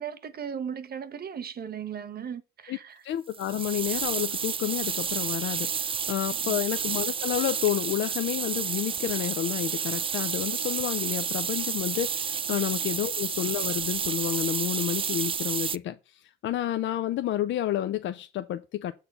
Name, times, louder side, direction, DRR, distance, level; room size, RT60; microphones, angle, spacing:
voice 1, 0.0-3.0 6.4-6.6, right 8 dB, 50° right, 1.0 m, -37 dB
voice 2, 3.0-18.9, left 11 dB, 70° left, 0.6 m, -30 dB
sound 1, 3.3-15.8, right 7 dB, 25° right, 0.4 m, -30 dB
7.1 x 4.2 x 6.7 m
cardioid pair, 90°, 20 cm